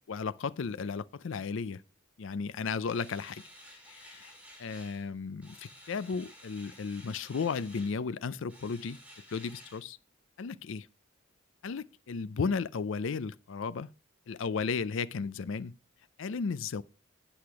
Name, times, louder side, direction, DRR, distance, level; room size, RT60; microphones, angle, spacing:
voice 1, 0.1-1.8 2.2-3.4 3.9-4.3 4.6-9.0 9.3-10.0 10.4-10.9 11.6-13.9 14.3-15.7 16.2-16.8, left 5 dB, 65° left, 0.4 m, -34 dB
sound 1, 2.8-5.1 5.4-8.0 8.5-9.8, equal, 5° right, 2.8 m, -53 dB
8.6 x 7.9 x 4.7 m
head